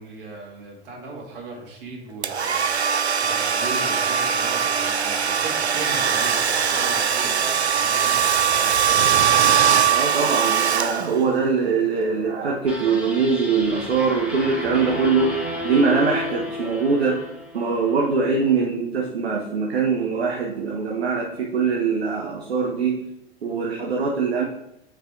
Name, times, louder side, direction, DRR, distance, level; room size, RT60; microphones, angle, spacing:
voice 1, 0.0-2.7 3.2-9.2, right 3 dB, 55° right, -1 dB, 2.4 m, -38 dB
Domestic sounds home sounds, 2.2-11.4, right 7 dB, 90° right, 0.5 m, -21 dB
voice 2, 9.9-17.3 17.5-23.1 23.4-24.5, right 5 dB, 75° right, 0 dB, 1.0 m, -22 dB
sound 1, 12.7-17.9, left 1 dB, 5° right, 2.1 m, -31 dB
6.5 x 5.1 x 3.6 m, 0.82 s
figure-of-eight pair, 85°, 32 cm